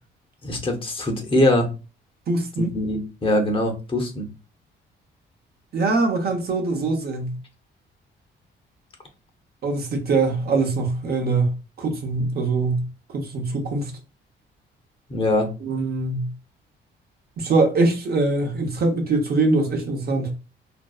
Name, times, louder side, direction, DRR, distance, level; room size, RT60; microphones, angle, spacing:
voice 1, 0.4-1.7 2.6-4.3 15.1-15.5, left 1 dB, 25° left, 0.7 m, -22 dB
voice 2, 2.3-2.7 5.7-7.4 9.6-11.5 11.8-12.9 13.1-13.9 15.6-16.3 17.4-20.3, right 3 dB, 50° right, 0.7 m, -23 dB
2.6 x 2.1 x 2.3 m
cardioid pair, 90°, 20 cm